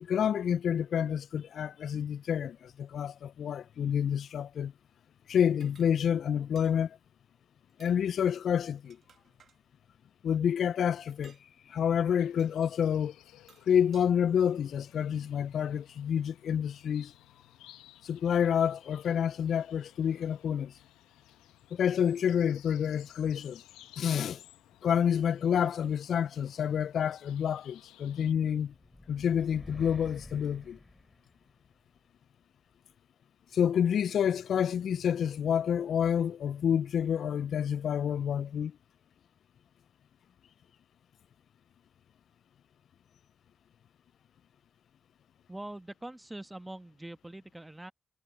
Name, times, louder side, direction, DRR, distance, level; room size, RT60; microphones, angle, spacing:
voice 1, 0.0-4.7 5.3-7.0 7.8-9.0 10.2-11.4 11.7-13.1 13.7-17.1 18.0-20.7 21.7-23.6 24.0-24.4 24.8-28.7 29.1-30.8 33.5-38.7, left 8 dB, 70° left, 0.3 m, -28 dB
sound 1, 5.6-5.9 6.6-6.8 7.7-8.0 8.7-9.6 11.1-11.5 12.4-12.6 13.3-14.1, right 7 dB, 65° right, 2.1 m, -60 dB
sound 2, 12.2-28.3, left 14 dB, 90° left, 1.2 m, -58 dB
sound 3, 28.7-31.7, left 1 dB, 15° left, 6.7 m, -49 dB
voice 2, 45.5-47.9, right 1 dB, 15° right, 1.6 m, -43 dB
supercardioid pair, 45°, 0 cm